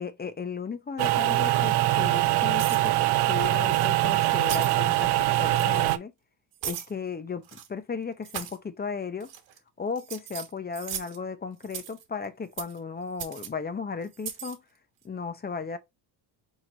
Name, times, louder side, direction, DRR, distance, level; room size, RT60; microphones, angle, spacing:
voice 1, 0.0-2.9 3.3-6.1 6.6-9.3 9.8-14.6 15.0-15.8, left 5 dB, 20° left, 0.6 m, -35 dB
sound 1, 1.0-6.0, right 16 dB, 55° right, 0.6 m, -23 dB
sound 2, 2.5-2.9 3.7-3.9 4.4-4.8 5.5-5.9 6.6-6.9 7.4-7.7 8.2-8.6 9.2-9.6 10.0-11.2 11.6-12.0 12.6-12.8 13.2-13.5 14.1-14.6, right 10 dB, 80° right, 1.3 m, -37 dB
4.5 x 2.9 x 3.8 m
cardioid pair, 90°, 47 cm